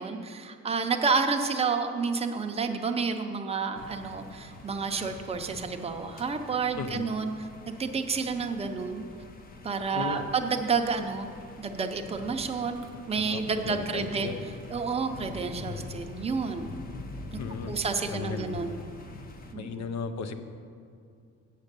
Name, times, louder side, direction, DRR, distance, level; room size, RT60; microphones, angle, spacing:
voice 1, 0.0-9.0 9.6-11.3 11.6-14.3 14.7-16.7 17.3-17.4 17.7-18.8 19.5-19.7, right 5 dB, 20° right, 4 dB, 0.5 m, -30 dB
sound 1, 3.7-19.5, left 3 dB, 30° left, 0.6 m, -44 dB
voice 2, 9.9-10.3 13.1-14.4 17.4-17.7 18.1-18.6 19.5-20.4, left 5 dB, 65° left, 9 dB, 0.7 m, -36 dB
8.2 x 7.5 x 6.7 m, 2.3 s
cardioid pair, 170°, 29 cm